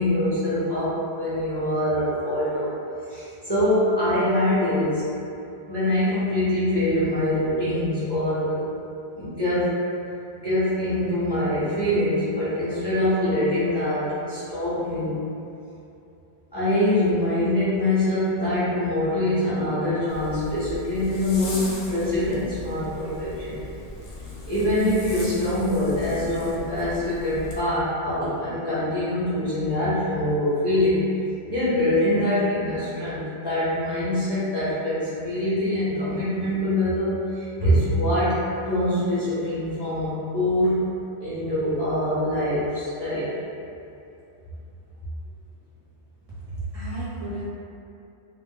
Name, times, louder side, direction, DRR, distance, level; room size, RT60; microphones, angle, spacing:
voice 1, 0.0-2.7 3.1-5.0 5.7-8.6 9.2-9.7 10.4-15.1 16.5-23.6 24.5-31.0 31.5-40.9 41.2-43.4, left 1 dB, 30° left, -13 dB, 0.6 m, -24 dB
Zipper (clothing), 20.1-27.6, left 2 dB, 70° left, 0.7 m, -38 dB
voice 2, 46.4-47.5, right 2 dB, 40° right, -12 dB, 0.7 m, -32 dB
2.1 x 2.0 x 3.6 m, 2.7 s
omnidirectional pair, 1.1 m